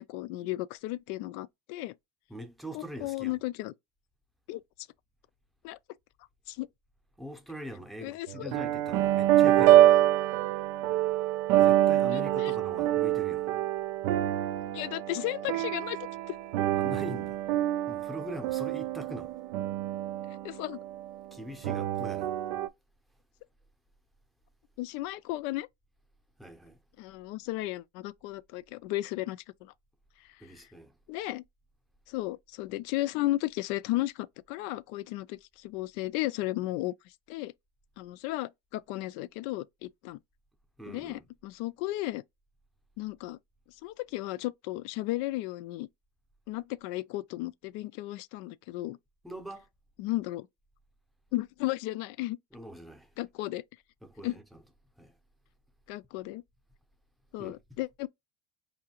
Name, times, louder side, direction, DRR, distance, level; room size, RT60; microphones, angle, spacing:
voice 1, 0.0-1.9 2.7-3.7 4.5-4.6 5.6-5.8 6.5-6.7 8.0-8.5 12.1-12.5 14.7-16.4 20.3-20.8 24.8-25.7 27.0-29.7 30.6-30.7 31.1-31.4 32.1-36.9 37.3-37.5 38.0-40.2 40.9-42.2 43.0-43.4 43.8-45.9 46.5-49.0 50.0-50.5 51.3-52.4 53.2-53.6 54.2-54.3 55.9-56.4 57.3-58.1, left 17 dB, 65° left, 0.4 m, -34 dB
voice 2, 2.3-3.4 7.2-9.8 11.6-13.5 16.7-17.4 17.9-19.4 21.3-22.4 26.4-26.8 30.4-30.9 40.8-41.2 49.2-49.7 52.5-53.1 54.0-54.6 55.0-55.1 57.4-57.6, equal, ahead, 0.7 m, -42 dB
sound 1, 8.3-21.1 21.6-22.7, right 13 dB, 80° right, 0.5 m, -26 dB
4.9 x 2.7 x 2.9 m
cardioid pair, 150°, 20 cm